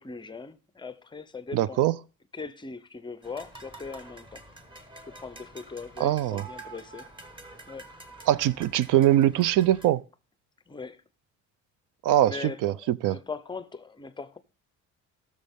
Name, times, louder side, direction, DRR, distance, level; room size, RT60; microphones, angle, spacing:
voice 1, 0.0-1.8 2.3-4.4 5.0-7.1 7.7-7.8 10.7-11.0 12.2-14.4, left 4 dB, 15° left, 0.5 m, -40 dB
voice 2, 1.5-1.9 6.0-6.4 8.3-10.0 12.0-13.2, right 13 dB, 75° right, 0.5 m, -22 dB
sound 1, 3.2-9.9, right 2 dB, 15° right, 1.2 m, -47 dB
18.5 x 6.4 x 3.5 m
cardioid pair, 170°, 32 cm